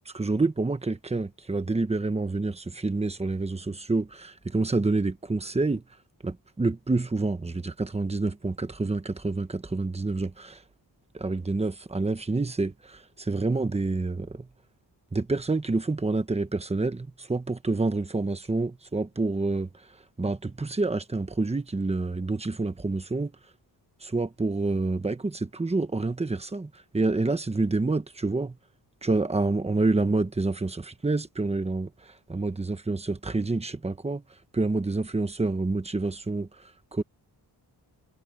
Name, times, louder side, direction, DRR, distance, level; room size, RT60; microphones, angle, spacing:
voice 1, 0.1-5.8 6.2-10.6 11.1-14.5 15.1-19.7 20.2-23.3 24.0-28.6 29.0-34.2 34.5-37.0, right 3 dB, 15° right, 1.2 m, -28 dB
wide cardioid pair, 150°, 41 cm